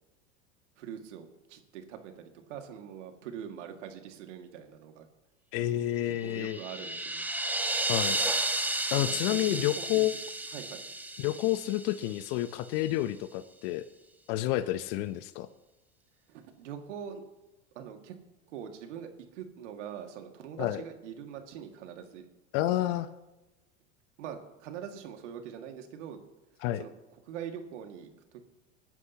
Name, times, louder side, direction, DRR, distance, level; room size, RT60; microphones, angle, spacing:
voice 1, 0.8-5.1 6.2-7.3 9.1-10.0 10.5-10.8 16.3-17.2 17.8-18.2 18.5-22.3 24.2-26.2 26.7-26.9 27.3-28.4, right 8 dB, 80° right, 4 dB, 2.1 m, -43 dB
voice 2, 5.5-6.6 7.9-8.2 8.9-10.2 11.2-13.8 14.3-15.5 20.6-20.8 22.5-23.1 26.6-26.8, left 14 dB, 60° left, 11 dB, 0.8 m, -29 dB
sound 1, 6.2-12.4, right 2 dB, 5° right, 1.1 m, -33 dB
20.5 x 10.5 x 2.9 m, 1.0 s
hypercardioid pair, 95°, 36 cm